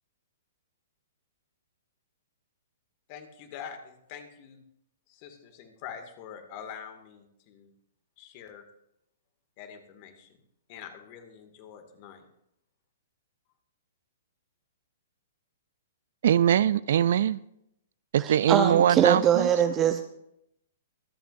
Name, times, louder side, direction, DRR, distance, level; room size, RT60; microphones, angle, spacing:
voice 1, 3.1-4.6 5.1-7.7 8.2-8.6 9.6-10.4 10.7-12.3, left 8 dB, 40° left, 6 dB, 2.2 m, -45 dB
voice 2, 16.2-17.4 18.1-19.5, right 10 dB, 60° right, 19 dB, 0.4 m, -22 dB
voice 3, 18.2-20.0, right 9 dB, 25° right, 7 dB, 0.7 m, -23 dB
24.0 x 9.1 x 2.7 m, 0.78 s
figure-of-eight pair, 115°, 0 cm